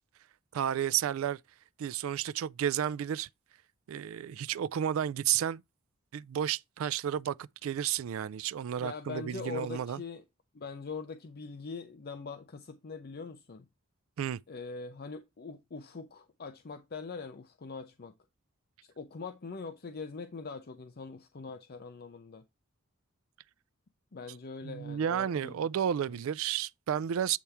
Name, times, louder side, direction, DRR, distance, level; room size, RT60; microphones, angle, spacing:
voice 1, 0.5-1.4 1.8-3.3 3.9-5.6 6.1-10.0 14.2-14.4 24.6-27.4, right 9 dB, 70° right, 0.3 m, -32 dB
voice 2, 8.8-10.2 10.5-13.7 14.5-18.1 18.8-22.4 24.1-25.6 26.1-26.2, left 4 dB, 50° left, 0.6 m, -42 dB
8.3 x 3.5 x 4.2 m
head